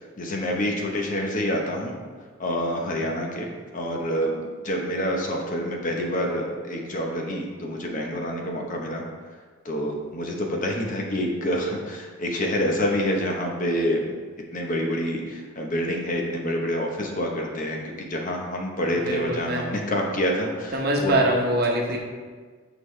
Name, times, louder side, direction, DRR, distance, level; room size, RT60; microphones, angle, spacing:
voice 1, 0.2-1.9 2.4-3.5 3.7-9.0 9.6-14.1 14.5-21.2, equal, 40° left, 0 dB, 0.9 m, -27 dB
voice 2, 19.0-19.7 20.7-22.0, right 1 dB, 50° right, 0 dB, 1.0 m, -23 dB
7.6 x 4.9 x 3.2 m, 1.5 s
head